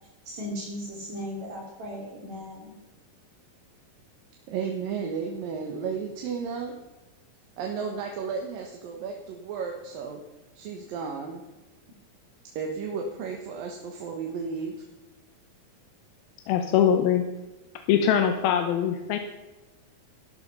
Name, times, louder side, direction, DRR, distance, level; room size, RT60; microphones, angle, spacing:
voice 1, 0.3-2.7, equal, 55° right, -2 dB, 3.7 m, -37 dB
voice 2, 4.5-6.7 7.6-10.2 10.6-11.4 12.6-14.8, right 5 dB, 75° right, 2 dB, 2.9 m, -33 dB
voice 3, 16.5-17.3 17.9-19.2, left 9 dB, 90° left, 5 dB, 2.7 m, -22 dB
12.5 x 12.0 x 5.5 m, 1.1 s
omnidirectional pair, 4.2 m